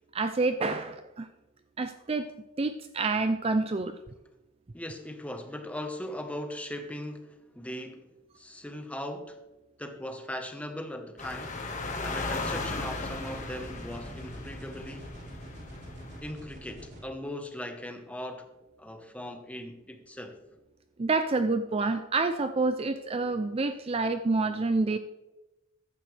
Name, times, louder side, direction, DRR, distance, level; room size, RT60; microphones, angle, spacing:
voice 1, 0.1-1.3 1.8-2.3 2.6-3.9 21.0-25.0, right 3 dB, 30° right, 0.4 m, -28 dB
voice 2, 4.7-8.1 8.3-9.4 9.8-11.6 12.0-15.1 16.2-18.5 18.8-20.4, left 1 dB, 5° left, 1.1 m, -39 dB
sound 1, 11.2-16.2, left 3 dB, 35° left, 1.7 m, -37 dB
sound 2, 12.6-17.0, right 1 dB, 55° right, 3.7 m, -46 dB
15.0 x 12.0 x 3.4 m
head